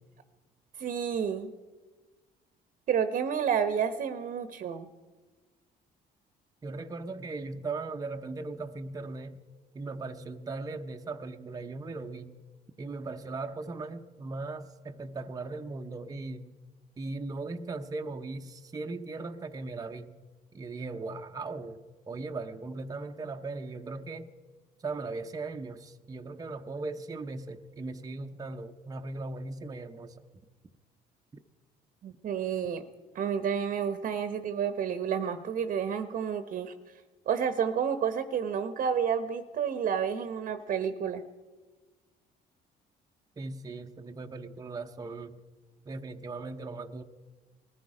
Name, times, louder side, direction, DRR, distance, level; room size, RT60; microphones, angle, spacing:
voice 1, 0.8-1.5 2.9-4.9 32.0-32.8 33.1-36.7 37.3-41.2, right 7 dB, 55° right, 0.9 m, -30 dB
voice 2, 6.6-9.4 9.7-12.4 12.8-16.5 17.0-20.2 20.5-24.3 24.8-30.2 43.4-45.4 45.9-47.0, right 3 dB, 20° right, 0.8 m, -38 dB
20.0 x 14.0 x 4.9 m
cardioid pair, 110°, 17 cm